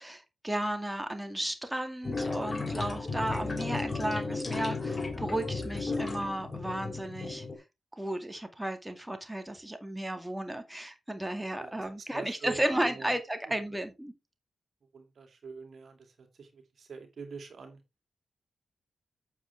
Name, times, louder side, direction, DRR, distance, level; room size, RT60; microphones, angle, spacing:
voice 1, 0.0-7.5 7.9-14.1, right 1 dB, 10° right, 2.1 m, -34 dB
sound 1, 2.0-7.6, left 3 dB, 35° left, 2.6 m, -34 dB
voice 2, 12.1-13.1 14.9-17.8, right 5 dB, 65° right, 2.5 m, -44 dB
8.8 x 7.7 x 3.5 m
supercardioid pair, 45°, 0 cm